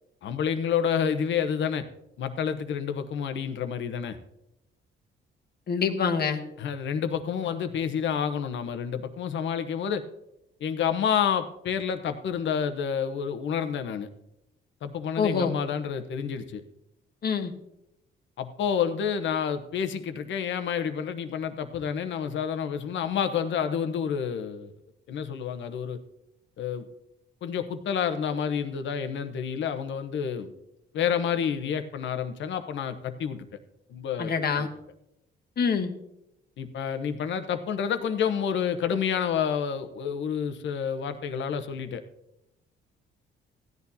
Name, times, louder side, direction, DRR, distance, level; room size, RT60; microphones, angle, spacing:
voice 1, 0.2-1.8 2.2-4.2 6.6-10.0 10.6-14.1 14.8-16.6 18.4-24.7 25.1-26.0 26.6-26.9 27.4-30.5 30.9-33.4 33.9-34.7 36.6-42.0, left 7 dB, 70° left, 9 dB, 1.0 m, -29 dB
voice 2, 5.7-6.4 15.2-15.5 17.2-17.5 34.2-34.7 35.6-35.9, left 6 dB, 55° left, 6 dB, 1.2 m, -25 dB
16.0 x 10.5 x 2.8 m, 0.86 s
cardioid pair, 90°, 20 cm